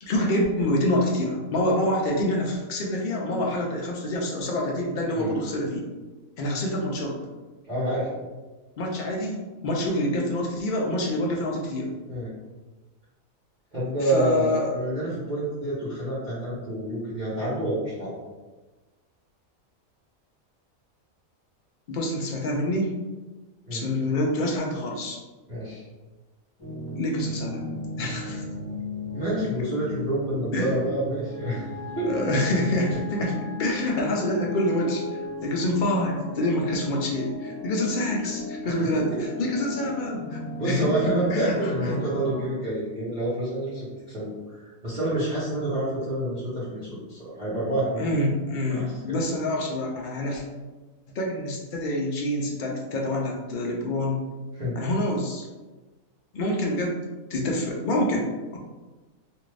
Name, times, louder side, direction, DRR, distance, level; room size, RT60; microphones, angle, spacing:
voice 1, 0.0-5.9 6.4-7.2 8.8-11.9 14.0-14.7 21.9-22.9 23.7-25.2 26.9-27.6 28.0-28.4 30.5-30.7 32.0-35.0 35.4-39.1 39.4-42.0 48.0-50.4 51.1-54.2 54.8-55.5 56.3-57.0 57.3-58.3, left 1 dB, 70° left, -1 dB, 0.4 m, -26 dB
voice 2, 7.7-8.2 12.1-12.3 13.7-18.1 23.7-23.8 25.5-25.8 29.1-31.7 31.9-32.4 38.6-38.9 40.6-44.3 44.6-48.1 48.7-49.2 54.5-54.8, right 1 dB, 35° right, -11 dB, 1.0 m, -28 dB
sound 1, 26.6-42.5, left 2 dB, 20° left, 0.9 m, -35 dB
2.6 x 2.5 x 3.1 m, 1.2 s
omnidirectional pair, 1.4 m